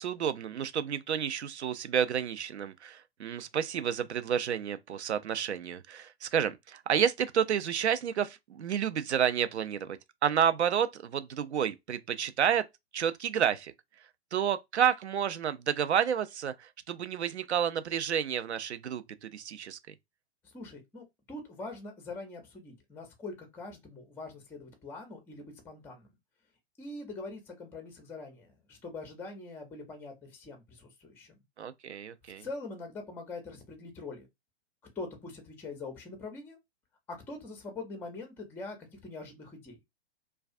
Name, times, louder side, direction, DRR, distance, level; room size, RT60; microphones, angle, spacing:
voice 1, 0.0-12.6 12.9-13.7 14.3-19.9 31.6-32.5, right 8 dB, 85° right, 0.5 m, -30 dB
voice 2, 20.4-26.1 26.8-31.4 32.4-34.3 35.0-36.6 37.1-39.8, left 3 dB, 5° left, 0.5 m, -43 dB
2.3 x 2.2 x 2.5 m
figure-of-eight pair, 115°, 33 cm